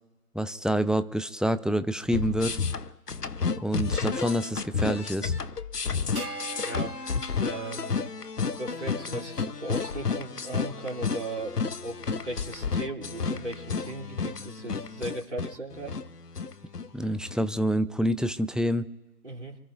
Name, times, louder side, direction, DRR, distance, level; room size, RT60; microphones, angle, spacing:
voice 1, 0.3-2.6 3.6-5.3 16.9-18.9, equal, ahead, 12 dB, 0.4 m, -27 dB
sound 1, 2.1-17.4, left 5 dB, 85° left, 0.9 m, -31 dB
sound 2, 6.2-8.7, right 3 dB, 70° right, 1.8 m, -42 dB
voice 2, 6.6-7.0 7.4-8.1 8.6-16.0 19.2-19.6, right 2 dB, 50° right, 0 dB, 3.0 m, -37 dB
28.5 x 13.5 x 2.5 m, 1.1 s
figure-of-eight pair, 175°, 46 cm